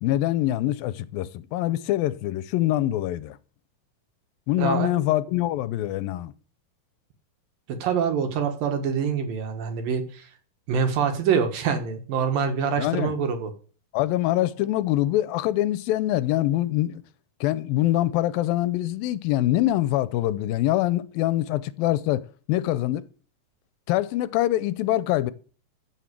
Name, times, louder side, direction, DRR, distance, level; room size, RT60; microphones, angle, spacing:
voice 1, 0.0-3.4 4.5-6.3 12.8-13.1 13.9-17.0 17.4-23.0 23.9-25.3, left 15 dB, 90° left, 2.5 m, -24 dB
voice 2, 4.6-4.9 7.7-10.3 10.7-13.5, right 6 dB, 75° right, 3.2 m, -25 dB
14.5 x 6.3 x 7.5 m
omnidirectional pair, 4.1 m